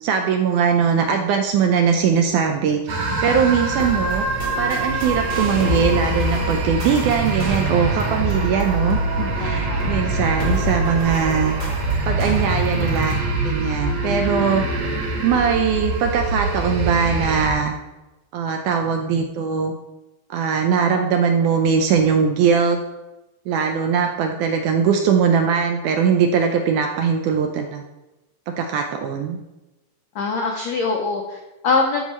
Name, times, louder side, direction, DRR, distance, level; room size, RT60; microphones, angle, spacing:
voice 1, 0.0-2.8 3.2-4.3 4.6-11.6 12.1-14.6 15.2-17.7 18.3-19.7 20.3-22.8 23.5-27.8 28.5-29.4, right 6 dB, 80° right, 4 dB, 1.8 m, -20 dB
sound 1, 2.9-17.5, right 2 dB, 60° right, 2.2 m, -24 dB
sound 2, 3.7-13.1, left 1 dB, 25° right, 1.1 m, -31 dB
voice 2, 9.4-9.9 30.1-32.0, left 4 dB, 85° left, 2 dB, 1.5 m, -23 dB
13.0 x 5.5 x 3.1 m, 1.0 s
omnidirectional pair, 4.0 m